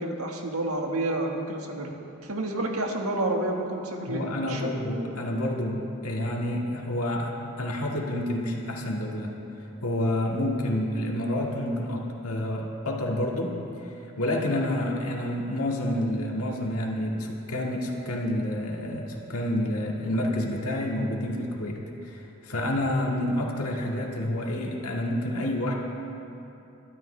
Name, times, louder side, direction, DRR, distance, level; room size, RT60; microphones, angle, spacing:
voice 1, 0.0-1.9 2.2-4.7, right 2 dB, 85° right, 1 dB, 1.6 m, -29 dB
voice 2, 4.1-9.3 9.8-13.6 13.8-25.7, left 1 dB, 90° left, -1 dB, 2.0 m, -29 dB
22.5 x 12.5 x 3.3 m, 2.8 s
head